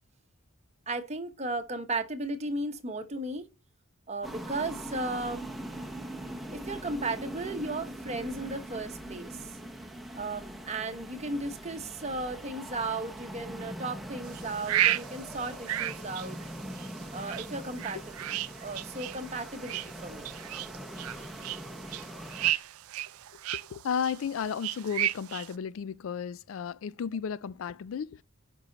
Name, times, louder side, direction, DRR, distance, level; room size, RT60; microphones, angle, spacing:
voice 1, 0.9-3.5 4.1-5.5 6.5-9.4 10.2-16.4 17.1-20.3, right 2 dB, 30° right, 1.0 m, -35 dB
sound 1, 4.2-22.5, right 1 dB, ahead, 1.0 m, -42 dB
sound 2, 14.3-25.5, right 13 dB, 90° right, 0.4 m, -34 dB
voice 2, 23.7-28.2, left 7 dB, 70° left, 0.4 m, -33 dB
9.0 x 5.5 x 3.9 m
head